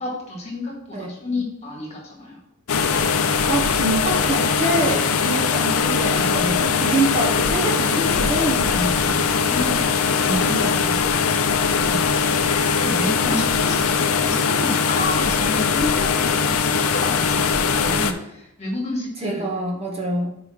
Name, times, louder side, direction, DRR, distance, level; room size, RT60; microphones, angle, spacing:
voice 1, 0.0-2.4 9.4-9.8 10.1-10.8 11.7-19.5, left 1 dB, 30° left, -2 dB, 1.8 m, -30 dB
sound 1, 2.7-18.1, left 5 dB, 65° left, 0.5 m, -21 dB
voice 2, 3.5-9.2 10.5-11.0 19.2-20.4, right 2 dB, 25° right, -1 dB, 0.9 m, -26 dB
4.9 x 4.8 x 5.5 m, 0.83 s
head